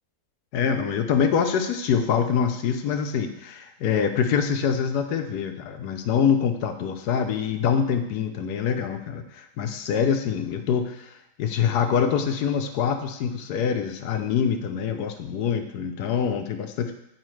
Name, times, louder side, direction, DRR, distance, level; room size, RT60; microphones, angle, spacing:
voice 1, 0.5-11.1 11.4-16.9, left 7 dB, 80° left, 7 dB, 1.2 m, -25 dB
8.8 x 4.8 x 3.2 m, 0.82 s
omnidirectional pair, 1.7 m